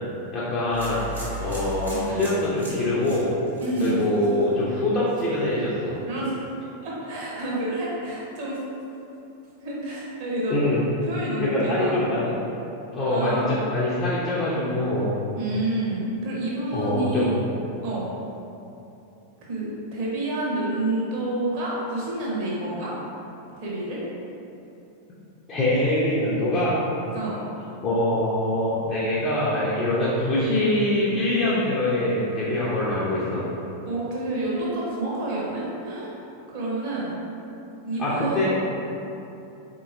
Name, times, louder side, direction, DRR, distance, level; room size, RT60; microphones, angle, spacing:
voice 1, 0.3-1.0 1.4-3.3 3.8-6.0 10.5-10.9 11.4-12.3 12.9-15.1 16.7-17.3 25.5-26.8 27.8-33.4 38.0-38.5, left 1 dB, 30° left, -9 dB, 0.7 m, -24 dB
sound 1, 0.7-4.8 5.1-5.5, right 1 dB, 80° right, 1.2 m, -37 dB
voice 2, 1.9-2.2 3.6-4.1 6.1-6.3 6.8-8.6 9.6-10.6 11.0-12.0 13.1-13.5 15.4-17.4 17.8-18.1 19.4-22.9 23.6-24.0 27.1-27.4 33.8-36.1 36.5-37.2 37.8-38.5, right 2 dB, 45° right, -6 dB, 1.0 m, -28 dB
4.1 x 2.9 x 2.6 m, 2.9 s
figure-of-eight pair, 90°, 0 cm